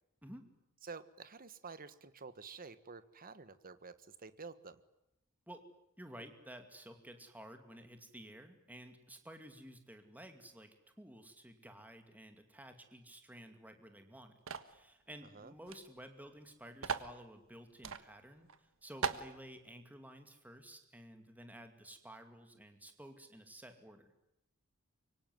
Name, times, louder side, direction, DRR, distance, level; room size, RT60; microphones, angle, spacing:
voice 1, 0.8-4.8 15.3-15.5, right 4 dB, 40° right, 13 dB, 1.5 m, -50 dB
voice 2, 6.0-24.2, right 1 dB, 5° right, 6 dB, 2.4 m, -53 dB
sound 1, 14.5-14.8 15.7-15.8 16.0-16.1 16.8-17.1 17.8-18.0 18.5-18.6 19.0-19.3, right 6 dB, 65° right, 1.5 m, -37 dB
25.5 x 24.0 x 9.4 m, 0.85 s
head